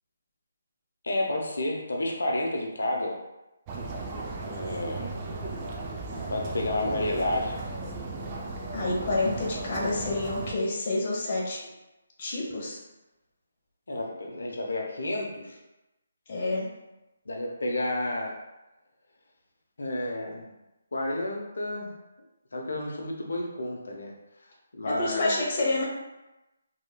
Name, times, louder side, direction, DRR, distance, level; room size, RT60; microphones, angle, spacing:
voice 1, 1.0-3.2 4.4-5.1 6.3-7.6 13.9-15.6 17.3-18.4 19.8-20.5 20.9-21.9 22.5-24.1 24.7-25.4, left 1 dB, 75° left, 0 dB, 0.7 m, -30 dB
sound 1, 3.7-10.5, right 2 dB, 25° right, 0.4 m, -36 dB
voice 2, 8.7-11.6 12.2-12.8 16.3-16.7 24.8-25.9, left 2 dB, 40° left, -4 dB, 0.9 m, -28 dB
2.9 x 2.8 x 2.3 m, 1.0 s
figure-of-eight pair, 150°, 0 cm